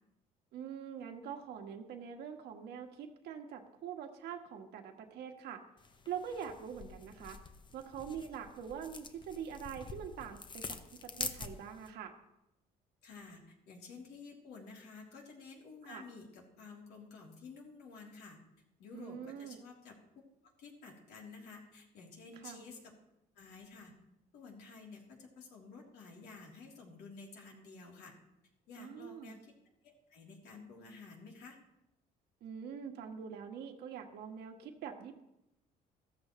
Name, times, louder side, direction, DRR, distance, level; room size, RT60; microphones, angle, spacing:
voice 1, 0.5-5.6 6.1-7.4 7.7-12.1 15.8-16.0 18.9-19.6 22.3-22.6 28.8-29.4 32.4-35.2, right 7 dB, 80° right, 4 dB, 1.7 m, -44 dB
sound 1, 5.8-11.9, left 4 dB, 30° left, 1.0 m, -46 dB
voice 2, 13.0-18.4 18.8-19.9 20.6-22.9 23.3-23.9 24.3-28.1 28.7-29.5 29.8-31.6, left 4 dB, 75° left, -1 dB, 3.4 m, -52 dB
14.5 x 13.5 x 3.2 m, 0.87 s
cardioid pair, 110°, 17 cm